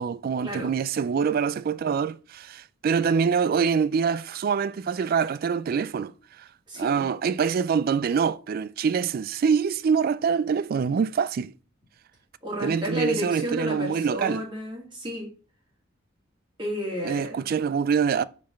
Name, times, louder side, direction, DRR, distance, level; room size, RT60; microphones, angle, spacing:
voice 1, 0.0-6.1 6.4-6.5 6.8-11.5 12.6-14.4 17.0-18.2, right 6 dB, 50° right, 0.3 m, -25 dB
voice 2, 6.7-7.1 12.4-15.3 16.6-17.4, left 1 dB, 25° right, 2.2 m, -32 dB
4.7 x 4.6 x 5.7 m
head